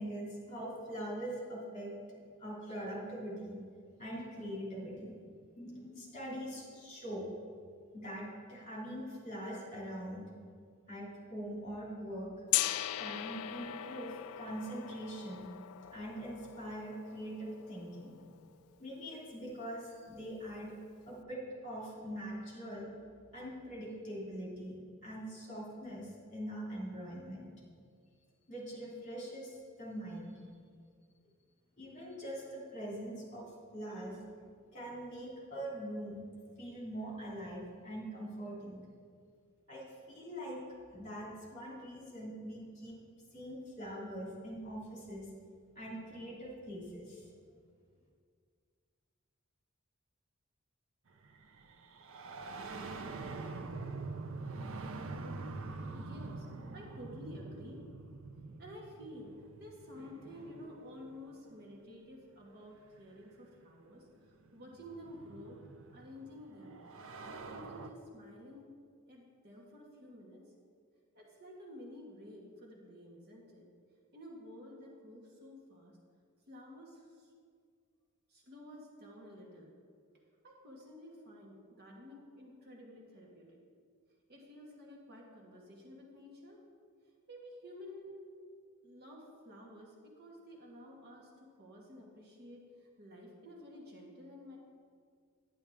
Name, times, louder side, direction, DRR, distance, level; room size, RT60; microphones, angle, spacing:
voice 1, 0.0-3.6 4.0-5.2 5.6-7.3 7.9-10.3 10.9-12.3 13.0-15.5 15.9-18.2 18.8-20.7 21.1-22.9 23.3-27.5 28.5-30.4 31.8-34.2 34.7-36.3 36.6-38.8 39.7-40.6 40.9-43.0 43.3-45.3 45.7-47.3, equal, 35° left, -5 dB, 2.9 m, -43 dB
Gong, 12.5-18.4, left 14 dB, 85° left, 0.3 m, -39 dB
Piano, 12.6-19.3, right 1 dB, 80° right, 2.7 m, -63 dB
sound 1, 51.2-61.8 63.0-63.1 64.2-67.9, right 3 dB, 65° right, 0.6 m, -45 dB
voice 2, 54.5-55.1 55.7-57.9 58.6-65.7 65.9-66.8 67.2-68.7 69.1-70.4 71.1-76.0 76.5-77.3 78.3-79.7 80.4-83.6 84.3-86.6 87.3-88.2 88.8-94.6, left 1 dB, 50° right, -2 dB, 1.6 m, -52 dB
10.0 x 10.0 x 3.5 m, 2.1 s
head